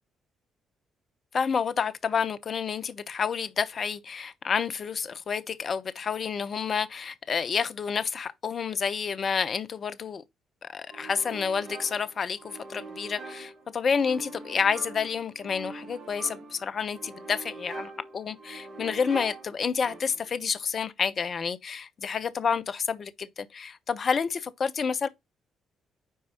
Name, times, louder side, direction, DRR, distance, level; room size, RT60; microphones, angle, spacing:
voice 1, 1.3-10.2 10.6-25.1, left 6 dB, 50° left, 1.0 m, -29 dB
sound 1, 10.9-20.4, right 3 dB, 50° right, 3.9 m, -44 dB
9.4 x 4.7 x 3.0 m
hypercardioid pair, 45°, 0 cm